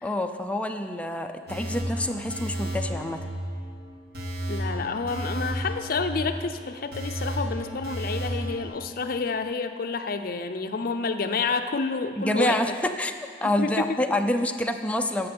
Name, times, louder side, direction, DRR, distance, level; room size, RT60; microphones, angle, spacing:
voice 1, 0.0-3.2 12.2-13.1 13.4-15.3, left 1 dB, 5° left, 5 dB, 0.5 m, -27 dB
sound 1, 1.5-8.7, right 1 dB, 60° right, 2.0 m, -33 dB
voice 2, 4.5-12.7 13.6-14.0, left 4 dB, 55° left, 8 dB, 0.6 m, -29 dB
11.0 x 6.6 x 7.9 m, 2.1 s
head